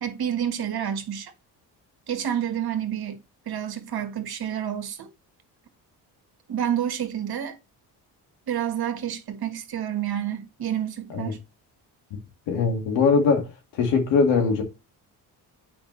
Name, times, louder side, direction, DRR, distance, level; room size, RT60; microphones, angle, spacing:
voice 1, 0.0-1.3 2.1-3.2 3.5-5.1 6.5-7.5 8.5-11.4, right 9 dB, 60° right, 1.6 m, -29 dB
voice 2, 12.5-13.4 13.7-14.6, left 5 dB, 90° left, 2.2 m, -21 dB
7.8 x 5.2 x 3.1 m
supercardioid pair, 70°, 43 cm